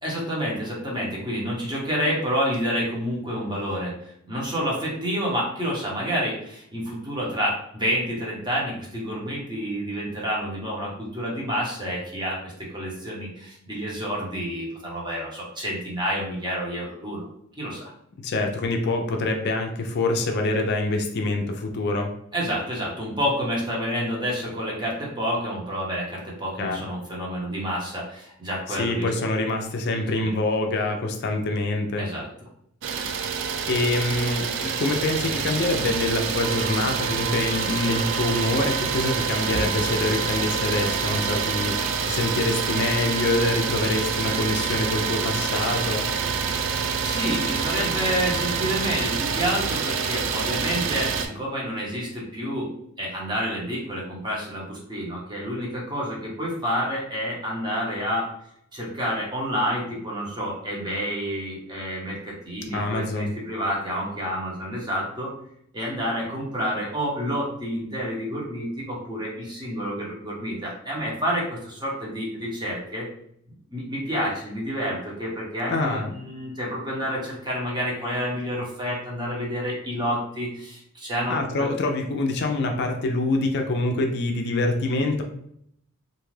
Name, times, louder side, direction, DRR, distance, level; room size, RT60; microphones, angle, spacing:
voice 1, 0.0-17.3 17.6-17.9 22.3-29.1 30.2-30.3 32.0-32.3 47.0-52.7 53.0-58.3 58.7-65.3 65.7-73.1 73.7-81.7, equal, 20° right, -4 dB, 0.9 m, -29 dB
voice 2, 18.2-22.1 26.6-26.8 28.7-32.1 33.7-46.0 62.7-63.3 75.7-76.1 81.3-85.2, left 2 dB, 50° left, 4 dB, 0.4 m, -25 dB
Idling, 32.8-51.3, right 6 dB, 60° right, 0.3 m, -27 dB
Wind instrument woodwind instrument, 36.4-49.1, right 5 dB, 75° right, 0.8 m, -35 dB
2.5 x 2.3 x 3.1 m, 0.70 s
head